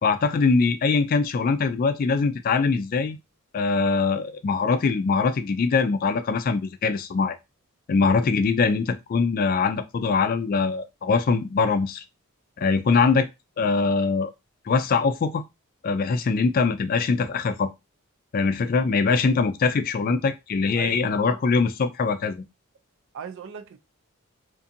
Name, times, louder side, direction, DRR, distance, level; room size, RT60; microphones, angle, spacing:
voice 1, 0.0-3.2 3.5-7.4 7.9-12.0 12.6-13.3 13.6-14.3 14.7-15.4 15.8-17.7 18.3-22.4, left 4 dB, 40° left, 0.3 m, -22 dB
voice 2, 20.8-21.4 23.1-23.8, right 7 dB, 60° right, 0.4 m, -38 dB
2.6 x 2.5 x 2.5 m
head